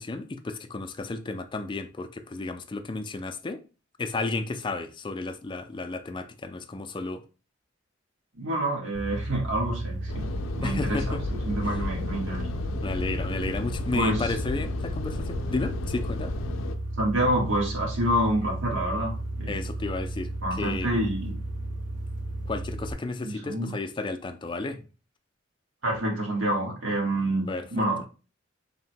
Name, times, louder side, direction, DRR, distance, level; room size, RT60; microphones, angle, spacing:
voice 1, 0.0-3.6 4.0-7.2 10.6-11.2 12.7-16.3 19.5-20.3 20.6-21.1 22.5-24.8 27.5-27.7, left 3 dB, 25° left, 0.4 m, -32 dB
voice 2, 8.3-10.3 10.5-12.5 13.9-14.4 17.0-19.6 20.4-21.4 23.2-23.7 25.8-28.1, right 1 dB, 85° right, 1.4 m, -27 dB
sound 1, 8.9-22.9, right 1 dB, 40° right, 0.5 m, -34 dB
sound 2, 10.1-16.8, left 4 dB, 90° left, 0.4 m, -34 dB
3.6 x 2.2 x 4.3 m
head